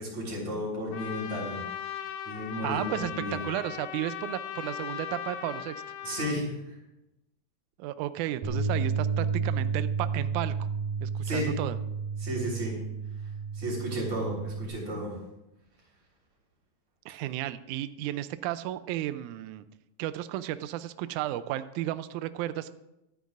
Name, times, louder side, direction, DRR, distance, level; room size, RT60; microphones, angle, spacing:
voice 1, 0.0-1.6 2.3-3.4 6.0-6.8 11.2-11.5 12.2-12.8 13.5-15.1, equal, 50° right, -3 dB, 4.8 m, -33 dB
Trumpet, 0.9-6.4, left 9 dB, 85° left, 1.5 m, -38 dB
voice 2, 2.6-3.1 3.4-5.8 7.8-10.6 11.0-11.8 17.1-19.7 20.0-22.7, right 13 dB, 90° right, 12 dB, 1.7 m, -33 dB
Bass guitar, 8.4-14.7, right 5 dB, 65° right, 3.2 m, -31 dB
24.5 x 9.3 x 2.5 m, 0.90 s
omnidirectional pair, 4.1 m